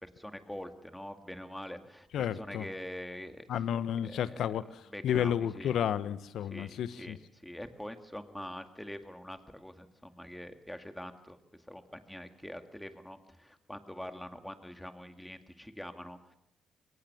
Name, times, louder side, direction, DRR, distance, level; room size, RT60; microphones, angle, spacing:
voice 1, 0.0-3.5 4.0-4.5 4.9-5.8 6.5-11.4 11.7-16.4, left 1 dB, 5° left, 7 dB, 2.2 m, -44 dB
voice 2, 2.1-2.7 3.5-7.2, left 9 dB, 75° left, 15 dB, 1.0 m, -32 dB
22.5 x 18.5 x 7.1 m, 0.83 s
cardioid pair, 90°, 0 cm